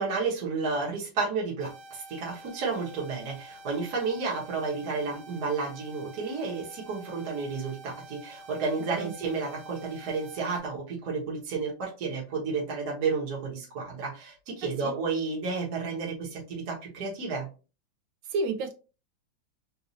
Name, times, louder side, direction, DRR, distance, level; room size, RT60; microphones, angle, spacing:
voice 1, 0.0-17.5, right 4 dB, 55° right, 1.6 m, -31 dB
sound 1, 1.6-10.6, right 1 dB, 90° right, 0.7 m, -48 dB
voice 2, 14.6-14.9 18.3-18.7, right 3 dB, 70° right, 1.3 m, -31 dB
3.9 x 2.6 x 2.7 m
omnidirectional pair, 2.2 m